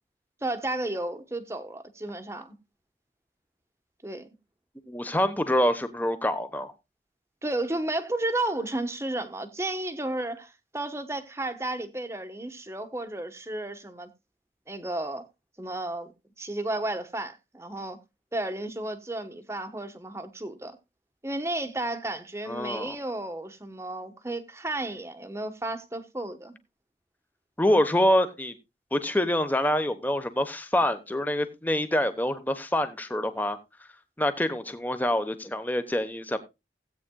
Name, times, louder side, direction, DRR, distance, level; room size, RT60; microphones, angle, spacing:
voice 1, 0.4-2.6 4.0-4.3 7.4-14.1 14.7-15.3 15.6-16.1 16.4-18.0 18.3-20.8 21.2-26.6, right 2 dB, 15° right, 1.1 m, -33 dB
voice 2, 4.9-6.7 22.5-23.0 27.6-28.5 28.9-33.6 34.2-36.4, left 1 dB, 10° left, 1.0 m, -26 dB
17.0 x 8.7 x 2.3 m
head